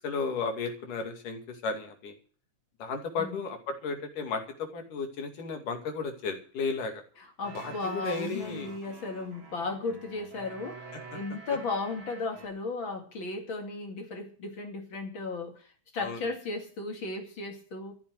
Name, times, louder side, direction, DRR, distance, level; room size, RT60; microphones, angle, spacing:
voice 1, 0.0-2.1 2.8-7.0 7.5-8.7 16.0-16.3, left 4 dB, 85° left, 4 dB, 4.0 m, -34 dB
voice 2, 7.2-18.0, left 3 dB, 40° left, 4 dB, 2.7 m, -35 dB
sound 1, 7.4-12.5, right 4 dB, 50° right, 4.0 m, -47 dB
14.5 x 7.3 x 9.4 m, 0.43 s
omnidirectional pair, 3.6 m